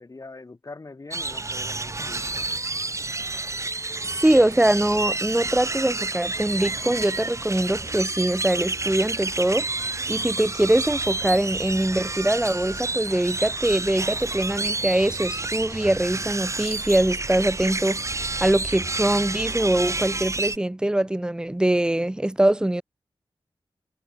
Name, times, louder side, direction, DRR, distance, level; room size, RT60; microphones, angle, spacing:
voice 1, 0.0-2.5, left 3 dB, 35° left, 4.7 m, -43 dB
sound 1, 1.1-20.6, right 3 dB, 30° right, 2.2 m, -29 dB
voice 2, 4.2-9.7 10.1-18.0 18.4-22.8, right 1 dB, 10° right, 0.6 m, -23 dB
wide cardioid pair, 120°, 9 cm